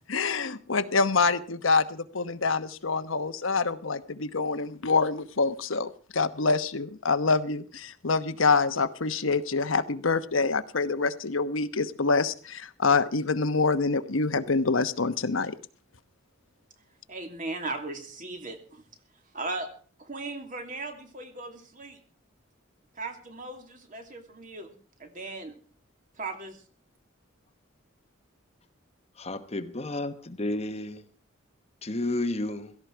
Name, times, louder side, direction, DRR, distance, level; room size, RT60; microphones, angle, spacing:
voice 1, 0.1-15.6, left 4 dB, 80° left, 1.1 m, -26 dB
voice 2, 17.1-18.8 19.3-19.7 20.0-22.0 23.0-24.7 25.0-25.5 26.2-26.5, right 2 dB, 40° right, 2.8 m, -37 dB
voice 3, 29.2-31.0 31.8-32.8, left 2 dB, 30° left, 1.1 m, -31 dB
16.5 x 15.0 x 4.6 m
head